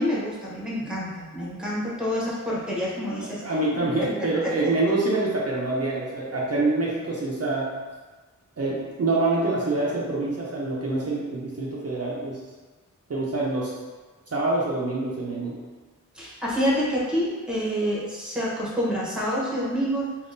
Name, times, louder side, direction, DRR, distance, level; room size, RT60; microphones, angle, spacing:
voice 1, 0.0-3.4 4.0-4.1 16.1-20.1, equal, 5° right, -6 dB, 0.8 m, -27 dB
voice 2, 3.2-7.7 8.6-12.4 13.1-13.7 14.3-15.6, right 2 dB, 50° right, -5 dB, 0.5 m, -26 dB
3.5 x 2.3 x 2.5 m, 1.4 s
wide cardioid pair, 70°, 33 cm